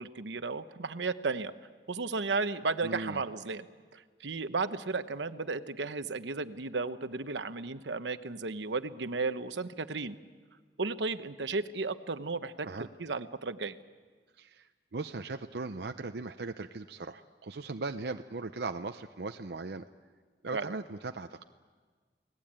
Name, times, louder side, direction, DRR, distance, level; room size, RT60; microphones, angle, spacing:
voice 1, 0.0-1.5 1.9-3.7 3.9-10.2 10.8-13.8 20.5-20.7, right 3 dB, 80° right, 11 dB, 1.0 m, -34 dB
voice 2, 2.8-3.2 12.6-12.9 14.4-19.8 20.4-21.4, right 3 dB, 65° right, 7 dB, 0.7 m, -38 dB
29.5 x 19.0 x 8.9 m, 1.5 s
head